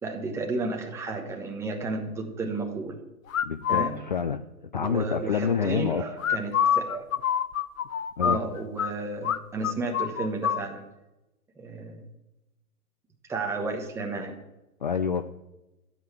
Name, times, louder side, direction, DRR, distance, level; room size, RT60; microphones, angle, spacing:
voice 1, 0.0-3.0 3.7-4.0 4.7-7.0 8.2-10.8 11.6-12.1 13.3-14.4, right 3 dB, 5° right, 2 dB, 1.1 m, -32 dB
sound 1, 3.3-3.9 6.2-8.9 9.2-9.4 9.6-10.6, left 9 dB, 60° left, 0.9 m, -26 dB
voice 2, 3.4-4.4 4.7-6.0 8.2-8.4 14.8-15.2, left 7 dB, 35° left, 11 dB, 0.4 m, -27 dB
13.0 x 8.1 x 8.9 m, 0.98 s
hypercardioid pair, 150°, 45 cm